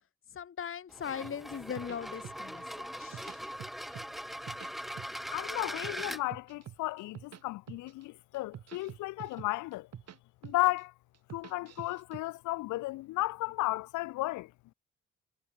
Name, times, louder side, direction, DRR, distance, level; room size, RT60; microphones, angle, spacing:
voice 1, 0.3-3.5, left 8 dB, 45° left, 1.2 m, -40 dB
sound 1, 0.9-6.2, equal, ahead, 0.8 m, -41 dB
sound 2, 1.2-2.6 2.9-4.1 4.3-5.3 5.6-7.4 7.7-8.0 8.3-10.2 10.4-10.8 11.1-12.2, right 10 dB, 60° right, 1.7 m, -47 dB
voice 2, 5.3-9.9 10.4-10.9 11.3-14.5, left 19 dB, 80° left, 1.7 m, -34 dB
hypercardioid pair, 40°, 30 cm